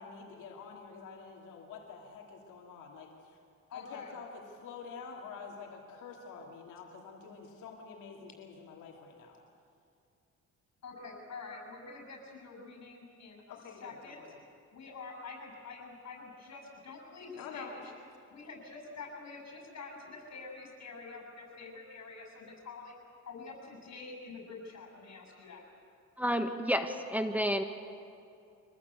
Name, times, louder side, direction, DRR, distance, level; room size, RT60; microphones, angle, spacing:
voice 1, 0.0-3.4 3.7-9.4 13.5-14.3 17.3-17.7, left 5 dB, 90° left, 0 dB, 2.8 m, -48 dB
voice 2, 3.7-4.1 10.8-13.4 13.8-14.3 14.7-17.9 18.3-22.9 23.3-25.6, left 4 dB, 60° left, 2 dB, 7.8 m, -47 dB
voice 3, 26.2-27.6, equal, 5° right, 5 dB, 1.4 m, -30 dB
25.5 x 19.5 x 8.3 m, 2.5 s
cardioid pair, 90°, 30 cm